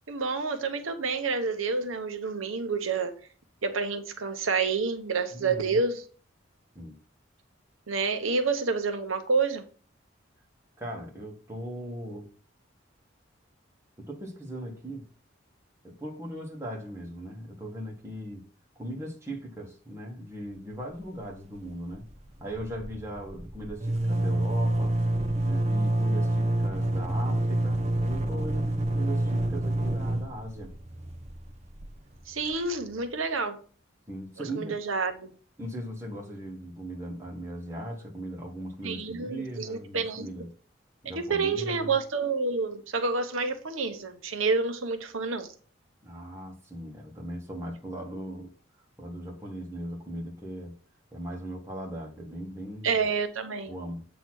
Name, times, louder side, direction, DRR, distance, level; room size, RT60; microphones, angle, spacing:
voice 1, 0.1-3.1 3.6-6.0 7.9-9.6 32.3-33.6 34.6-35.3 38.8-40.3 41.2-45.5 52.8-53.7, right 4 dB, 85° right, 0.9 m, -28 dB
voice 2, 5.3-5.8 6.7-7.0 10.8-12.3 14.0-15.1 15.8-18.4 18.7-22.1 22.4-25.0 25.4-30.7 34.1-34.7 35.6-40.5 41.0-41.9 46.0-48.5 49.0-50.7 51.1-53.0 53.6-54.1, right 1 dB, 15° right, 1.4 m, -39 dB
sound 1, 20.7-21.3 21.5-21.7 21.9-32.6, right 1 dB, 35° right, 0.6 m, -28 dB
8.0 x 3.0 x 6.1 m
head